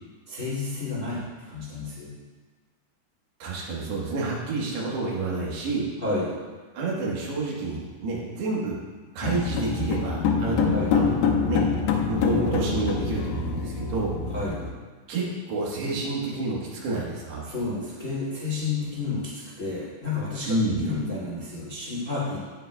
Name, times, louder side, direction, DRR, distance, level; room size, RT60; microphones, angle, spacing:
voice 1, 0.3-2.1 6.0-6.3 10.7-10.9 14.3-14.6 17.4-22.4, left 3 dB, 35° left, -8 dB, 1.3 m, -31 dB
voice 2, 3.4-5.9 6.7-8.8 9.1-11.1 11.4-11.6 12.1-14.2 15.1-17.5 20.5-20.8, right 3 dB, 70° right, -4 dB, 3.2 m, -29 dB
sound 1, 9.2-14.7, left 5 dB, 80° left, 2.9 m, -25 dB
18.5 x 7.0 x 2.2 m, 1.4 s
omnidirectional pair, 5.2 m